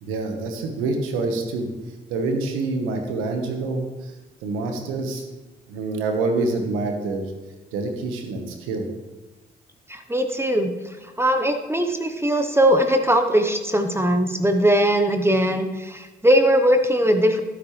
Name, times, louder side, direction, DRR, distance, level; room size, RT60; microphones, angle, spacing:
voice 1, 0.0-1.7 2.1-4.1 4.4-5.2 5.7-7.3 7.7-8.9, right 3 dB, 85° right, 4 dB, 1.4 m, -26 dB
voice 2, 9.9-10.7 11.2-17.4, equal, 10° right, 6 dB, 1.0 m, -20 dB
12.0 x 10.5 x 3.3 m, 1.1 s
supercardioid pair, 55°, 21 cm